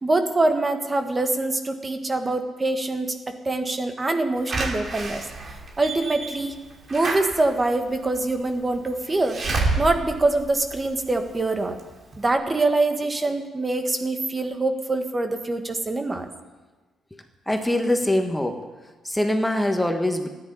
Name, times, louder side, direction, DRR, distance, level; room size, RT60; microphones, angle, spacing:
voice 1, 0.0-5.2 5.8-6.6 6.9-9.4 9.8-11.8 12.2-16.3, right 2 dB, 25° right, 6 dB, 1.5 m, -24 dB
Slam / Alarm, 4.5-11.3 11.8-11.9 12.1-12.2, right 2 dB, 45° right, 2.8 m, -30 dB
voice 2, 17.5-18.6 19.0-20.3, left 1 dB, 10° left, 5 dB, 1.4 m, -23 dB
12.5 x 10.5 x 9.9 m, 1.2 s
cardioid pair, 90°, 0 cm